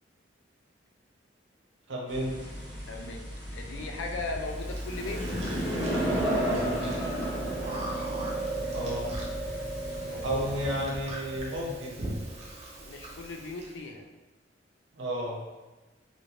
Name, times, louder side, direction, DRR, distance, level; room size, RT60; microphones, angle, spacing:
voice 1, 1.9-2.4 8.7-9.1 10.2-12.0 14.9-15.4, right 1 dB, 80° right, -3 dB, 0.6 m, -32 dB
sound 1, 2.1-10.8, equal, 5° right, 0.8 m, -33 dB
voice 2, 2.9-3.3 3.5-5.2 10.1-10.8 12.7-14.1, left 3 dB, 80° left, 3 dB, 0.4 m, -38 dB
Chewing mastication, 4.7-13.7, right 2 dB, 40° right, 0.5 m, -37 dB
2.7 x 2.5 x 3.0 m, 1.2 s
head